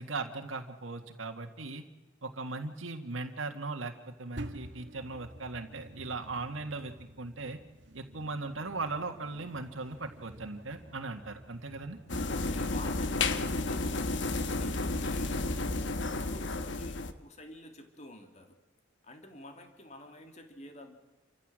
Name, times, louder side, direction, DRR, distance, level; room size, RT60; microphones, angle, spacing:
voice 1, 0.0-1.8 2.2-7.6 7.9-12.0, right 3 dB, 85° right, 5 dB, 1.8 m, -38 dB
sound 1, 4.4-13.2, right 1 dB, 65° right, 1.6 m, -50 dB
sound 2, 12.1-17.1, left 3 dB, 65° left, 1.2 m, -32 dB
voice 2, 12.2-18.6 19.0-21.0, left 1 dB, 35° left, 5 dB, 2.6 m, -49 dB
28.5 x 15.0 x 7.6 m, 1.2 s
head